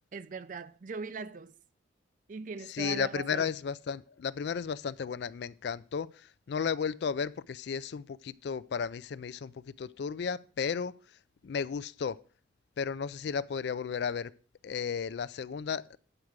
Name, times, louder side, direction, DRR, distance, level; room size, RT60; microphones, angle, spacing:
voice 1, 0.1-1.5 2.3-3.5, right 5 dB, 45° right, 0.4 m, -40 dB
voice 2, 2.7-11.0 11.4-12.2 12.8-14.3 14.6-16.0, left 6 dB, 60° left, 0.3 m, -34 dB
8.8 x 4.7 x 6.4 m
head